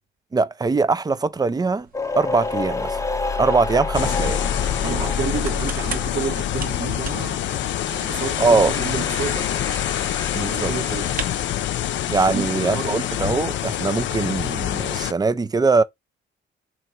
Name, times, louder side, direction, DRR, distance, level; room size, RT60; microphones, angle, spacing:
voice 1, 0.3-1.9 2.2-3.0 3.4-4.4 8.4-8.8 10.3-10.7 12.1-15.8, right 4 dB, 20° right, 0.4 m, -21 dB
sound 1, 1.3-12.1, right 5 dB, 45° right, 1.0 m, -41 dB
sound 2, 1.9-13.0, left 4 dB, 15° left, 0.7 m, -30 dB
sound 3, 3.9-15.1, left 12 dB, 70° left, 0.5 m, -26 dB
voice 2, 4.8-9.5 10.5-11.2 12.3-13.0, right 6 dB, 70° right, 1.4 m, -31 dB
3.4 x 3.0 x 4.4 m
cardioid pair, 90°, 20 cm